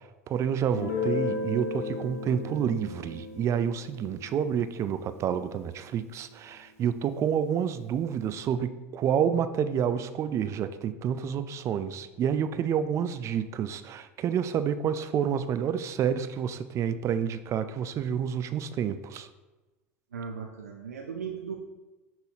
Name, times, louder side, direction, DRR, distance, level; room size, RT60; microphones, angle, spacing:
voice 1, 0.3-19.3, right 8 dB, 40° right, 12 dB, 0.4 m, -29 dB
Guitar, 0.7-6.2, left 4 dB, 85° left, 1.0 m, -35 dB
voice 2, 20.1-21.6, right 6 dB, 85° right, 0 dB, 0.5 m, -37 dB
6.0 x 5.5 x 2.9 m, 1.1 s
hypercardioid pair, 80°, 8 cm